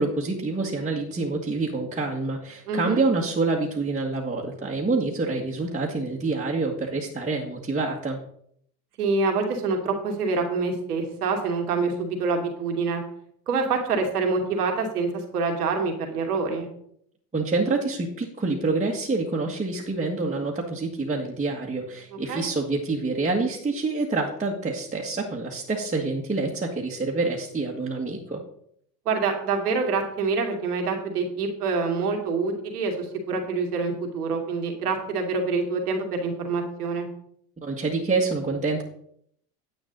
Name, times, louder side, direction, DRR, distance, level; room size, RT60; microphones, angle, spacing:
voice 1, 0.0-8.2 17.3-28.4 37.6-38.8, right 3 dB, 15° right, -3 dB, 1.7 m, -27 dB
voice 2, 2.7-3.0 9.0-13.0 13.5-16.7 22.3-22.4 29.1-37.1, right 4 dB, 90° right, 3 dB, 2.3 m, -26 dB
9.7 x 8.8 x 4.0 m, 0.68 s
hypercardioid pair, 80°, 44 cm